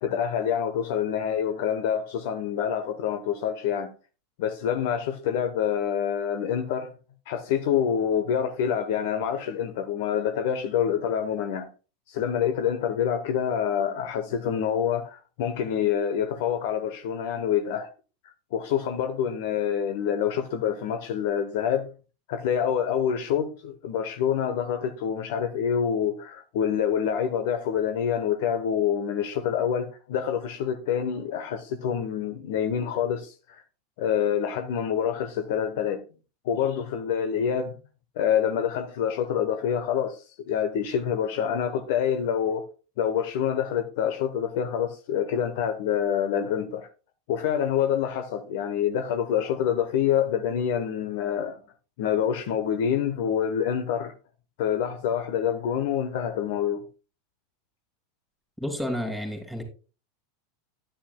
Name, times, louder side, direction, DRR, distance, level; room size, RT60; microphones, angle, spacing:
voice 1, 0.0-3.9 4.4-6.9 7.3-11.7 12.1-17.9 18.5-21.9 22.3-33.3 34.0-36.0 36.4-37.7 38.2-40.2 40.5-42.7 43.0-46.9 47.3-51.6 52.0-54.1 54.6-56.8, left 8 dB, 60° left, 0.9 m, -26 dB
voice 2, 58.6-59.6, equal, ahead, 2.9 m, -30 dB
10.0 x 10.0 x 2.2 m
figure-of-eight pair, 85°, 0 cm